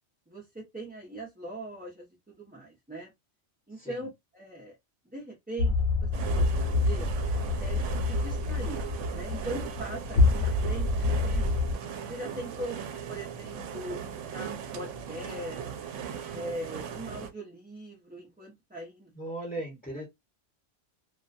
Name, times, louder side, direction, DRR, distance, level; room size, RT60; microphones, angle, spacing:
voice 1, 0.3-3.1 3.7-4.8 5.0-5.8 6.0-7.1 7.6-8.8 9.1-11.5 12.1-12.8 13.1-14.1 14.3-15.7 16.3-19.1, right 1 dB, 10° right, 0.5 m, -41 dB
sound 1, 5.6-11.7, left 3 dB, 60° left, 0.5 m, -27 dB
sound 2, 6.1-17.3, right 7 dB, 80° right, 0.9 m, -38 dB
voice 2, 19.1-20.0, right 1 dB, 5° left, 0.9 m, -37 dB
2.4 x 2.2 x 2.5 m
omnidirectional pair, 1.2 m